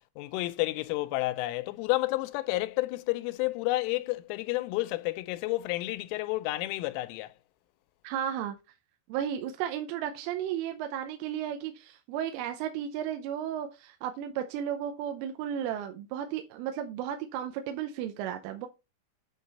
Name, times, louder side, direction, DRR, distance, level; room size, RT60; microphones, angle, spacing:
voice 1, 0.2-7.3, left 19 dB, 90° left, 3.1 m, -30 dB
voice 2, 8.0-8.6 9.1-18.7, right 10 dB, 85° right, 3.2 m, -34 dB
9.2 x 3.8 x 4.1 m
omnidirectional pair, 5.6 m